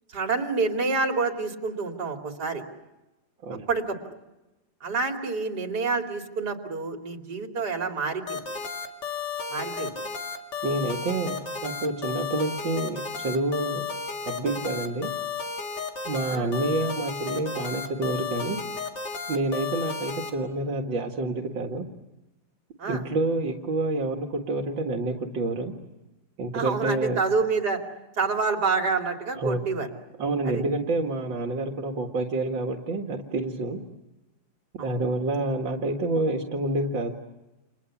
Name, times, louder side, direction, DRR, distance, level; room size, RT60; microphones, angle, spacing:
voice 1, 0.1-2.6 3.7-4.1 4.8-8.4 9.5-9.9 16.2-16.5 22.8-23.0 26.5-27.8 28.2-29.9 30.4-30.6 34.8-34.9, right 4 dB, 60° right, 3 dB, 3.2 m, -28 dB
sound 1, 8.3-20.3, left 5 dB, 65° left, 3.0 m, -33 dB
voice 2, 10.6-13.9 14.3-15.1 16.1-18.6 19.3-21.8 22.9-25.7 26.4-27.2 29.4-29.7 30.2-33.8 34.8-37.1, right 2 dB, 85° right, 3 dB, 2.5 m, -28 dB
30.0 x 28.0 x 7.2 m, 1.0 s
omnidirectional pair, 2.0 m